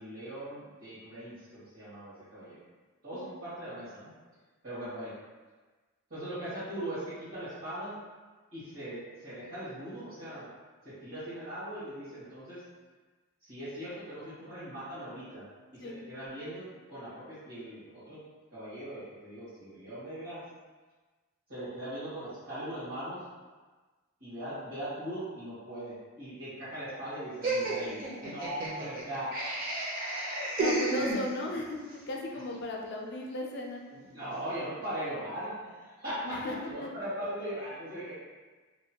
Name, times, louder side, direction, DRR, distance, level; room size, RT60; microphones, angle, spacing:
voice 1, 0.0-2.6 3.0-4.1 4.6-5.1 6.1-8.0 8.5-10.5 10.8-12.6 13.4-15.4 15.7-18.2 18.5-20.4 21.5-23.2 24.2-29.3 32.3-32.4 33.9-36.3 36.6-38.1, right 1 dB, 80° right, -15 dB, 1.5 m, -40 dB
Laughter, 27.4-31.7, right 2 dB, 45° right, 0.5 m, -32 dB
voice 2, 30.6-33.8 36.2-36.5 36.8-36.9, left 1 dB, 55° left, 1 dB, 0.4 m, -36 dB
2.9 x 2.1 x 2.8 m, 1.3 s
head